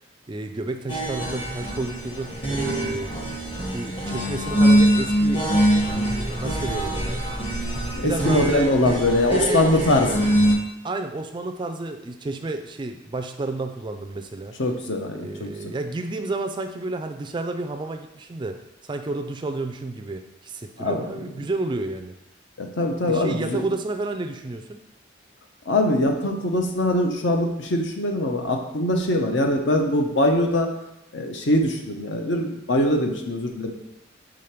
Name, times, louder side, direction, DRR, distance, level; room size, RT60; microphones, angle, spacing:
voice 1, 0.3-3.1 3.7-5.5 5.9-7.2 8.0-8.8 9.3-10.1 10.8-14.6 15.1-18.6 18.8-22.1 23.0-24.8 29.2-29.5, right 2 dB, 25° right, 6 dB, 0.3 m, -31 dB
sound 1, 0.9-10.5, equal, 30° left, 1.1 m, -23 dB
voice 2, 2.6-2.9 7.9-10.1 14.6-15.7 20.8-21.1 22.6-23.6 25.7-30.7 31.1-33.7, left 1 dB, 65° left, 3 dB, 0.8 m, -22 dB
5.0 x 3.7 x 5.7 m, 0.86 s
head